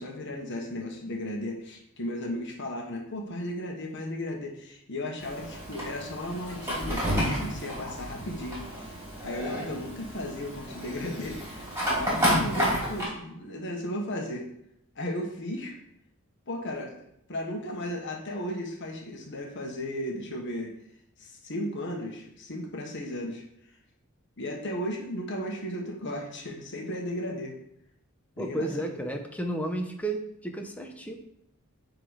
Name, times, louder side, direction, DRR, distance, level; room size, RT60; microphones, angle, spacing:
voice 1, 0.0-9.0 9.2-11.6 12.0-14.5 14.9-15.8 16.5-17.0 17.3-20.7 21.2-23.4 24.4-27.5 28.4-28.7, left 1 dB, 55° left, 1 dB, 1.3 m, -35 dB
Fire, 5.2-13.0, equal, 10° right, 3.4 m, -31 dB
voice 2, 28.4-31.1, right 1 dB, 5° left, 4 dB, 0.8 m, -32 dB
9.8 x 3.9 x 4.9 m, 0.75 s
head